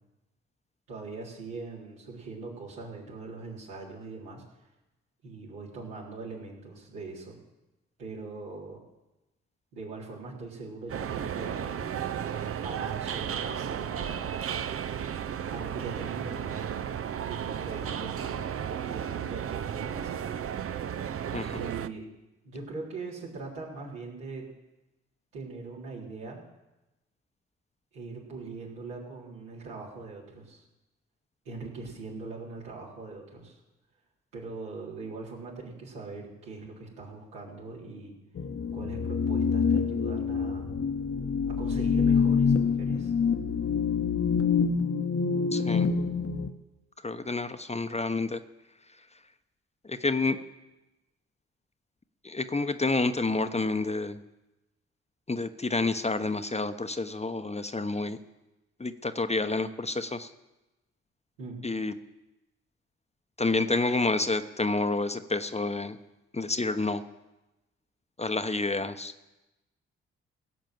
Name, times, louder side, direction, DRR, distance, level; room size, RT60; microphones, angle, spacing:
voice 1, 0.9-4.4 5.2-7.4 8.0-8.8 9.7-12.2 12.6-14.3 15.5-16.6 17.2-20.3 21.5-22.0 22.4-24.5 25.3-26.4 27.9-30.6 31.4-33.6 34.3-38.1 38.7-40.7 41.5-43.1 61.4-61.6, right 3 dB, 80° right, -5 dB, 3.9 m, -41 dB
sound 1, 10.9-21.9, right 9 dB, 45° right, 0.7 m, -34 dB
Dark Synth, 38.4-46.5, left 6 dB, 45° left, 1.1 m, -26 dB
voice 2, 45.5-45.9 47.0-48.4 49.8-50.4 52.2-54.2 55.3-58.2 58.8-60.3 61.6-61.9 63.4-66.0 66.3-67.0 68.2-69.1, left 3 dB, 20° left, 9 dB, 1.0 m, -29 dB
17.0 x 6.6 x 7.7 m, 1.0 s
hypercardioid pair, 40°, 32 cm